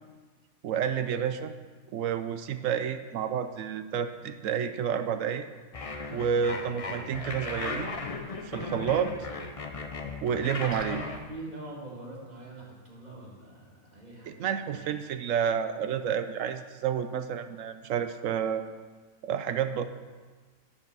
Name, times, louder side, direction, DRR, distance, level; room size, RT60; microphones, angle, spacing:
voice 1, 0.6-1.5 1.9-5.4 6.1-7.9 8.4-9.3 10.2-11.0 14.3-18.6 19.2-19.8, right 8 dB, 75° right, 10 dB, 0.9 m, -30 dB
sound 1, 5.7-11.2, left 3 dB, 35° left, 0.6 m, -36 dB
voice 2, 10.9-14.9, right 2 dB, 30° right, -5 dB, 2.4 m, -44 dB
10.5 x 5.5 x 6.8 m, 1.4 s
omnidirectional pair, 1.4 m